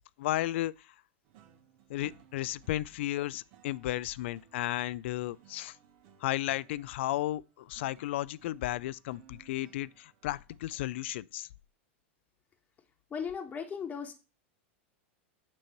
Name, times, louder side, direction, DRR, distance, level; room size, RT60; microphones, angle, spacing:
voice 1, 0.2-0.9 1.9-5.8 6.2-11.5, left 15 dB, 65° left, 0.3 m, -34 dB
sound 1, 1.2-11.0, right 9 dB, 55° right, 1.1 m, -61 dB
voice 2, 13.1-14.1, left 6 dB, 25° left, 1.3 m, -37 dB
8.9 x 3.0 x 6.5 m
hypercardioid pair, 105°, 7 cm